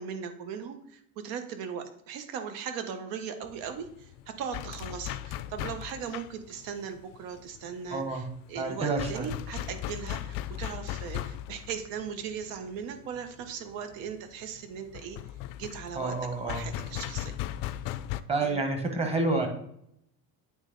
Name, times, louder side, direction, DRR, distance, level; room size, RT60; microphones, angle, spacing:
voice 1, 0.0-15.2 15.6-17.4 18.4-18.6, right 7 dB, 75° right, 7 dB, 1.1 m, -38 dB
sound 1, 3.4-18.2, left 13 dB, 70° left, 0.5 m, -38 dB
voice 2, 7.9-8.3 8.5-9.3 15.9-16.6 18.3-19.5, right 3 dB, 15° right, 4 dB, 1.3 m, -29 dB
8.8 x 3.2 x 3.9 m, 0.72 s
cardioid pair, 130°, 35 cm